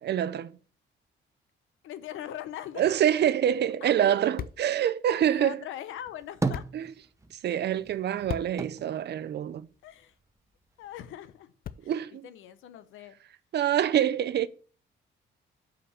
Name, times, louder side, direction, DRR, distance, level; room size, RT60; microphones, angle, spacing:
voice 1, 0.0-0.6 2.8-5.6 6.7-6.9 7.3-9.7 11.9-12.3 13.5-14.5, right 10 dB, 55° right, 0.6 m, -26 dB
voice 2, 1.8-2.8 3.8-3.9 5.3-6.6 9.8-10.1 10.8-11.5 11.8-11.9 12.2-13.1, left 11 dB, 85° left, 0.8 m, -41 dB
sound 1, 3.1-12.2, left 9 dB, 50° left, 0.5 m, -45 dB
sound 2, 6.0-7.5 7.8-10.1 10.5-11.4, right 3 dB, 15° right, 0.8 m, -36 dB
5.6 x 5.2 x 6.5 m
cardioid pair, 90°, 20 cm